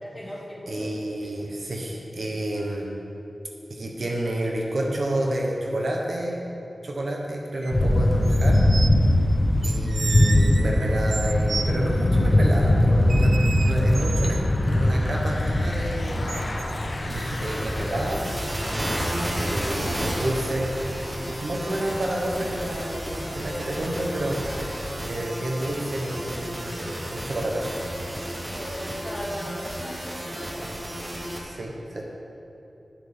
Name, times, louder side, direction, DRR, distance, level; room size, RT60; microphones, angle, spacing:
voice 1, 0.0-0.9 1.2-1.3 28.5-30.7, equal, 5° left, -4 dB, 1.5 m, -37 dB
voice 2, 0.7-2.9 3.7-6.4 6.8-8.6 9.6-13.4 13.6-16.2 17.0-18.2 19.3-20.7 21.3-24.4 25.1-27.8 31.3-32.0, right 1 dB, 60° right, -1 dB, 1.0 m, -29 dB
sound 1, 7.6-7.7 8.2-9.0 9.6-11.7 13.1-14.5 16.3-16.7, right 4 dB, 75° right, 0.3 m, -33 dB
Thunder / Bicycle, 7.7-24.8, left 1 dB, 45° left, 0.9 m, -23 dB
sound 2, 17.1-31.4, equal, 25° right, 1.0 m, -32 dB
9.8 x 6.6 x 3.6 m, 2.9 s
wide cardioid pair, 90°, 0 cm